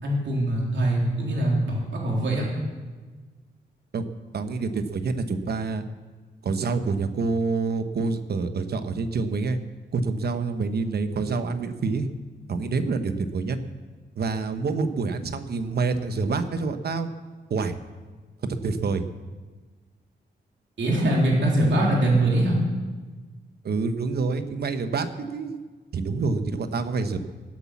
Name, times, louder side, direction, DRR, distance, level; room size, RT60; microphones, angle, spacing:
voice 1, 0.0-2.5 20.8-22.6, right 1 dB, 85° right, -3 dB, 3.5 m, -22 dB
voice 2, 4.3-5.8 6.4-9.6 9.9-12.1 12.5-13.6 14.2-17.1 17.5-17.7 18.4-19.0 23.6-25.6 25.9-27.2, right 4 dB, 60° right, 9 dB, 1.0 m, -27 dB
18.0 x 8.4 x 7.3 m, 1.4 s
wide cardioid pair, 165°, 19 cm